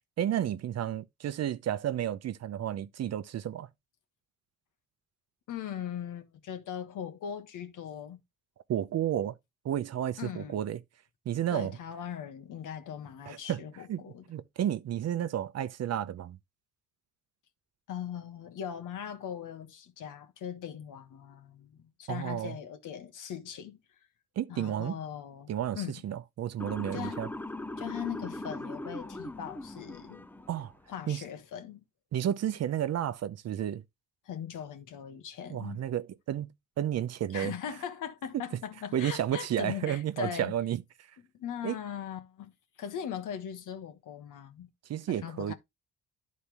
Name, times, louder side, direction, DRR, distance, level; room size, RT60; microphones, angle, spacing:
voice 1, 0.2-3.7 8.7-9.4 9.6-10.8 11.3-11.7 13.3-13.6 13.9-14.0 14.3-16.4 22.1-22.6 24.4-25.0 25.5-27.3 30.5-30.7 31.1-31.2 32.1-33.8 35.5-36.5 36.8-37.5 38.9-40.8 41.6-41.7 44.9-45.5, right 11 dB, 55° right, 0.7 m, -31 dB
voice 2, 5.5-8.2 10.2-10.6 11.5-14.2 17.9-23.8 24.5-25.5 25.7-26.0 26.9-27.2 27.8-30.3 30.9-31.8 34.2-35.8 37.3-40.5 41.3-42.5 42.8-44.7 45.1-45.5, left 9 dB, 80° left, 1.4 m, -40 dB
Motor vehicle (road) / Siren, 26.6-30.7, left 2 dB, 5° left, 0.4 m, -40 dB
11.5 x 4.2 x 3.4 m
cardioid pair, 140°, 31 cm